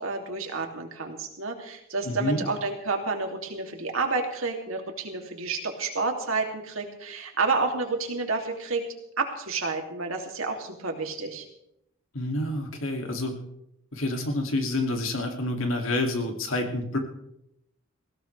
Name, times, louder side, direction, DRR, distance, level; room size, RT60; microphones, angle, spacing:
voice 1, 0.0-8.8 9.2-11.4, right 3 dB, 80° right, 2 dB, 2.8 m, -30 dB
voice 2, 2.1-2.4 12.1-13.4 13.9-17.0, left 2 dB, 75° left, 3 dB, 2.5 m, -28 dB
19.5 x 16.0 x 3.4 m, 0.79 s
head